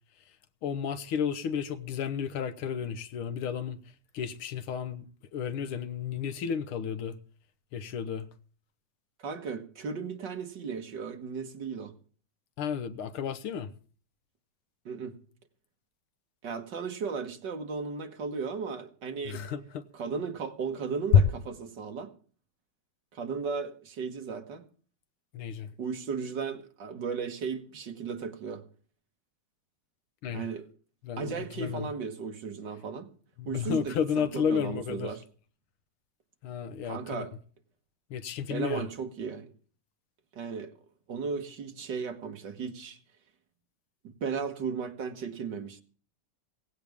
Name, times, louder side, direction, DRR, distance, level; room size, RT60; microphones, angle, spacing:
voice 1, 0.6-3.8 4.1-5.1 5.3-7.2 7.7-8.3 12.6-13.7 19.3-19.8 25.3-25.7 30.2-30.5 31.0-31.9 33.4-35.1 36.4-37.3 38.1-38.9, left 7 dB, 90° left, 1.9 m, -32 dB
voice 2, 9.2-11.9 14.9-15.2 16.4-19.4 19.9-22.1 23.1-24.7 25.8-28.6 30.3-30.7 31.2-33.1 33.5-35.2 36.8-37.3 38.5-39.5 40.3-40.7 41.1-43.0 44.0-45.8, right 5 dB, 60° right, 2.1 m, -35 dB
17.5 x 16.0 x 3.5 m
omnidirectional pair, 2.3 m